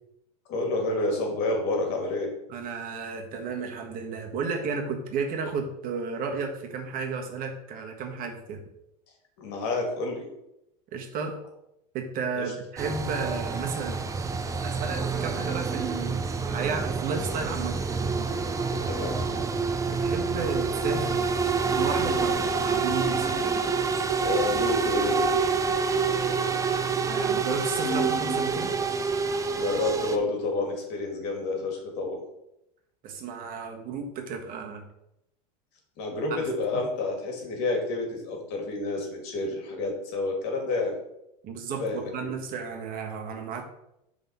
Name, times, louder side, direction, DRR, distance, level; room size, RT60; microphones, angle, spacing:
voice 1, 0.5-2.3 9.4-10.2 12.3-12.5 18.7-19.2 24.2-25.2 29.5-32.2 36.0-41.0 41.8-42.3, left 2 dB, 55° left, 1 dB, 2.3 m, -29 dB
voice 2, 2.5-8.6 10.9-11.4 11.9-14.0 14.6-17.8 19.9-21.3 21.7-23.4 27.1-28.7 33.0-34.9 36.3-36.4 36.7-36.8 41.4-43.6, right 5 dB, 45° right, 3 dB, 1.4 m, -33 dB
sound 1, 12.8-30.2, right 5 dB, 15° right, 0.6 m, -27 dB
5.7 x 3.9 x 5.5 m, 0.82 s
hypercardioid pair, 105°, 20 cm